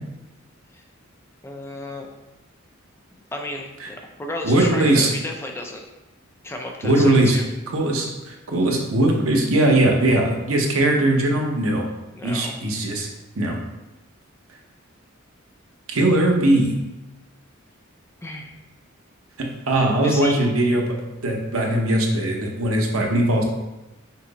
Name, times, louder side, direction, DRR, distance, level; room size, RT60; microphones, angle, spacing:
voice 1, 1.4-2.1 3.3-5.8 6.4-7.5 12.1-12.5 18.2-18.5 20.0-20.4, left 1 dB, 10° left, 2 dB, 0.3 m, -33 dB
voice 2, 4.4-5.1 6.8-7.4 7.7-11.8 12.2-13.1 13.4-13.6 15.9-16.8 19.4-20.9 21.2-23.4, right 1 dB, 85° right, 0 dB, 0.8 m, -20 dB
5.7 x 2.0 x 3.9 m, 1.0 s
head